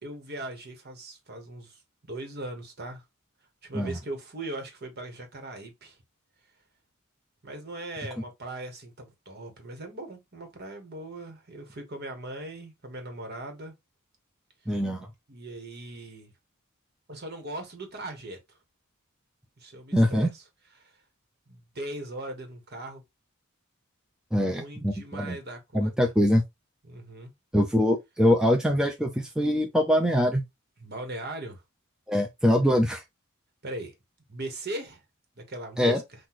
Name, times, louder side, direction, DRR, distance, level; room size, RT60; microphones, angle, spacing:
voice 1, 0.0-1.8 2.1-3.0 3.6-6.0 7.4-13.7 15.3-16.3 17.1-18.6 19.6-20.4 20.8-20.9 21.5-23.0 24.5-25.9 26.9-27.3 30.8-31.6 33.6-33.9 34.3-35.0 35.4-36.0, right 1 dB, 50° right, 1.4 m, -39 dB
voice 2, 14.7-15.1 19.9-20.3 24.3-25.4 25.7-26.4 27.5-30.4 32.1-33.0 35.8-36.0, equal, 5° right, 0.5 m, -23 dB
5.9 x 2.6 x 3.0 m
head